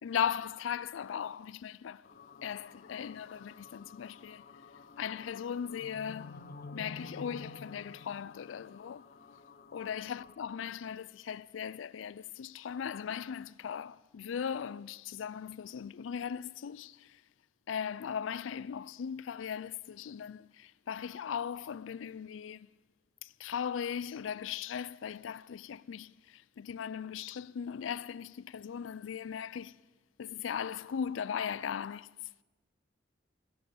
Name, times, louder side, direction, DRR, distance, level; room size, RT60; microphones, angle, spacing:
voice 1, 0.0-2.1 2.4-4.4 5.0-6.4 6.7-9.1 9.7-17.2 17.7-22.7 23.2-29.8 30.2-32.1, left 8 dB, 85° left, 0.4 m, -38 dB
sound 1, 2.0-10.3, left 3 dB, 55° left, 0.7 m, -50 dB
16.0 x 10.5 x 7.0 m
head